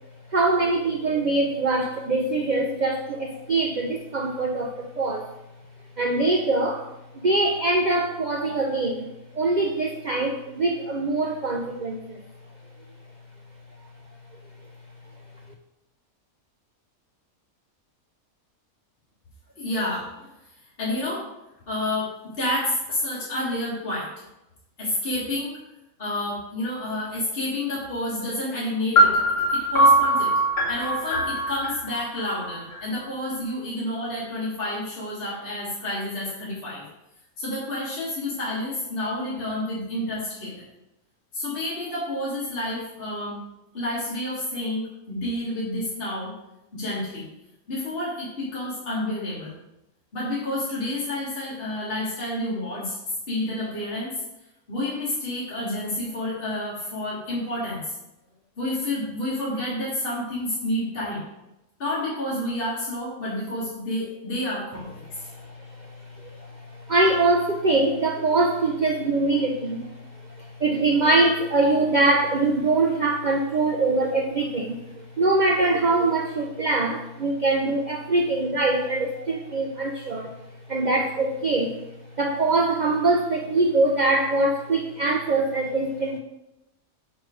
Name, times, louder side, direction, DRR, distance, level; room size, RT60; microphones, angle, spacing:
voice 1, 0.3-5.3 6.0-12.2 65.1-80.3 80.7-81.8 82.2-86.2, right 2 dB, 85° right, 2 dB, 0.4 m, -23 dB
voice 2, 19.6-20.3 20.8-21.3 21.7-24.2 24.8-25.6 26.0-29.2 29.5-30.3 30.7-36.8 37.4-40.5 41.3-43.4 43.7-46.3 46.7-47.3 47.7-49.5 50.1-53.0 53.3-54.1 54.7-57.9 58.6-61.2 61.8-65.4, left 1 dB, 40° left, -8 dB, 1.8 m, -29 dB
sound 1, 29.0-32.8, right 1 dB, 60° left, 1.8 m, -21 dB
5.4 x 4.9 x 4.9 m, 0.92 s
omnidirectional pair, 1.5 m